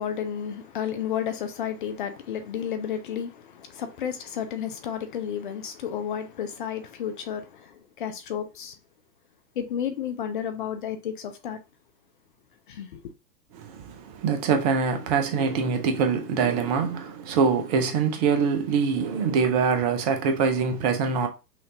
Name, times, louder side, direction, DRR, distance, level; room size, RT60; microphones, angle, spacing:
voice 1, 0.0-8.7 9.6-11.6 12.7-13.0, left 8 dB, 35° left, 0.5 m, -32 dB
voice 2, 13.5-21.3, right 5 dB, 25° right, 0.6 m, -24 dB
5.8 x 2.5 x 2.8 m
figure-of-eight pair, 115°, 50 cm